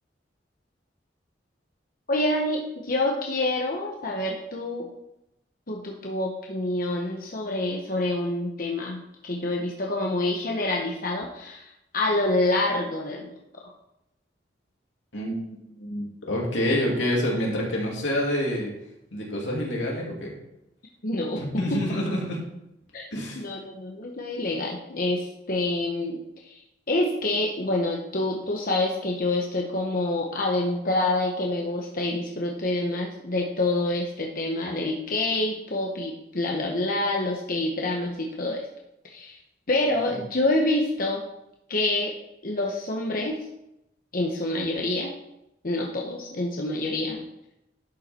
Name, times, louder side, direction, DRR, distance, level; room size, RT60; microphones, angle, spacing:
voice 1, 2.1-4.9 5.7-11.7 11.9-13.3 21.0-21.4 22.9-23.0 23.4-26.6 26.9-38.6 39.1-39.4 39.7-41.2 41.7-42.1 42.4-43.4 44.1-45.1 45.6-47.2, left 2 dB, 50° left, -1 dB, 1.0 m, -27 dB
voice 2, 15.1-18.7 19.1-20.3 21.3-22.4 23.1-23.4, left 1 dB, 90° left, -3 dB, 2.8 m, -27 dB
11.5 x 5.5 x 4.4 m, 0.85 s
head